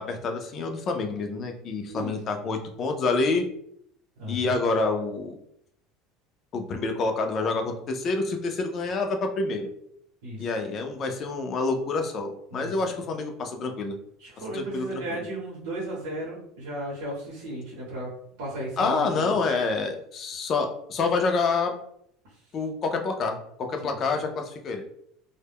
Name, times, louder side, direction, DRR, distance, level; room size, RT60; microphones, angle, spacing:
voice 1, 0.0-3.4 4.3-5.4 6.5-9.7 10.4-14.0 14.5-15.2 18.8-21.7 22.5-24.8, left 3 dB, 35° left, 4 dB, 0.4 m, -27 dB
voice 2, 4.2-4.5 10.2-10.5 12.5-12.8 14.2-18.1 18.4-19.3 23.8-24.0, right 1 dB, 85° right, -5 dB, 0.8 m, -35 dB
2.1 x 2.0 x 3.4 m, 0.70 s
cardioid pair, 140°, 0 cm